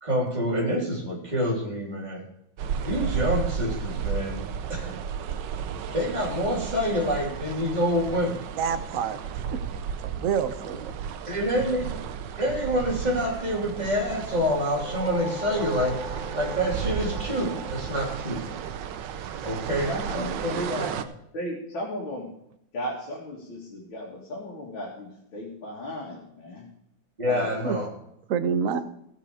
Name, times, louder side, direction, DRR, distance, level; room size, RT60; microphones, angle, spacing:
voice 1, 0.0-2.2 2.9-4.4 4.7-4.9 5.9-8.4 11.3-12.0 12.4-18.4 19.4-20.8 27.2-27.9, equal, 20° right, -2 dB, 3.3 m, -27 dB
sound 1, 2.6-21.0, right 8 dB, 70° right, 1.4 m, -33 dB
voice 2, 8.6-9.2 9.5-9.6 10.0-10.9 27.6-27.8 28.3-28.8, right 7 dB, 55° right, 10 dB, 1.1 m, -27 dB
sound 2, 14.7-19.2, equal, 25° left, 1.2 m, -39 dB
voice 3, 19.9-20.9 21.3-22.3 22.7-26.7 27.3-27.5, equal, 90° left, -3 dB, 3.0 m, -35 dB
15.5 x 7.4 x 4.9 m, 0.80 s
omnidirectional pair, 2.1 m